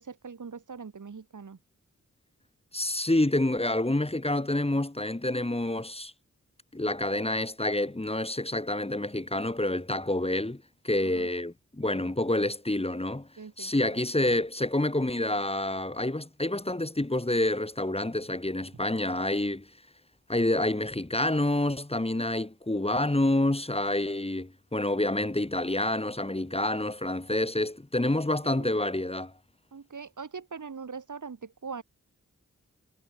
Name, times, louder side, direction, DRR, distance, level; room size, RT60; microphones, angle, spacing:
voice 1, 0.0-1.6 11.0-11.3 13.4-14.0 28.4-28.7 29.7-31.8, right 5 dB, 70° right, 6.4 m, -42 dB
voice 2, 2.7-6.1 6.7-13.3 13.6-19.7 20.3-29.3, left 1 dB, 20° left, 3.1 m, -28 dB
cardioid pair, 50°, 31 cm